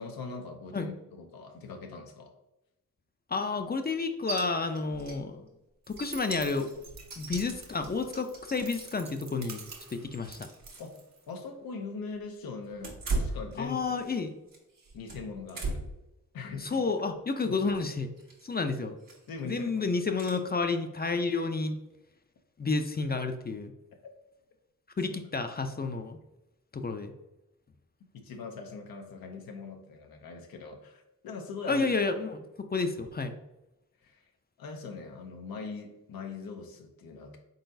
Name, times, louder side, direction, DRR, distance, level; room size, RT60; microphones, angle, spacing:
voice 1, 0.0-2.4 10.8-10.9 11.3-13.8 14.9-15.8 16.3-16.8 17.4-17.6 19.3-19.9 28.1-31.9 34.0-34.3 34.6-37.4, left 4 dB, 90° left, 3 dB, 0.6 m, -41 dB
voice 2, 3.3-5.5 5.9-6.8 7.2-9.6 9.9-10.5 13.6-14.3 16.6-18.1 18.4-18.9 19.4-21.7 22.6-23.7 25.0-26.2 26.7-27.1 31.7-33.4, left 4 dB, 30° left, 7 dB, 0.5 m, -30 dB
sound 1, 4.3-4.4 4.7-5.2 5.5-5.6 5.9-9.0 9.6-10.9 11.2-11.3 12.7-14.2 14.5-16.0 16.5-16.8 18.2-18.5 19.0-19.4 20.2-20.4, right 3 dB, 70° right, 1.2 m, -38 dB
sound 2, 5.8-11.6, right 5 dB, 50° right, 0.8 m, -48 dB
3.9 x 3.8 x 2.6 m, 0.92 s
cardioid pair, 45°, 35 cm